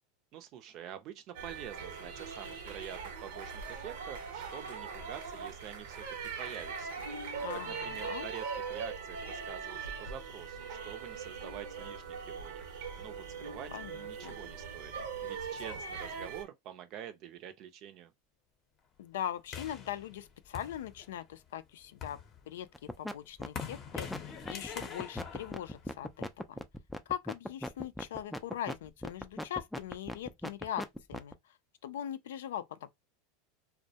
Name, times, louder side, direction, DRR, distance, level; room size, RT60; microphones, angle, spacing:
voice 1, 0.3-7.0 7.7-14.9 15.2-18.1, right 10 dB, 50° right, 0.5 m, -47 dB
sound 1, 1.3-16.4, right 5 dB, 80° right, 0.8 m, -41 dB
voice 2, 7.4-8.3 13.7-14.0 14.2-14.4 19.0-22.2 22.5-26.6 27.1-31.6 31.8-32.9, left 10 dB, 85° left, 0.3 m, -41 dB
sound 2, 19.5-21.3 21.8-26.4, left 7 dB, 35° left, 0.6 m, -44 dB
sound 3, 22.7-23.1 23.4-31.3, left 1 dB, 5° left, 0.3 m, -38 dB
2.3 x 2.1 x 2.7 m
supercardioid pair, 120°, 0 cm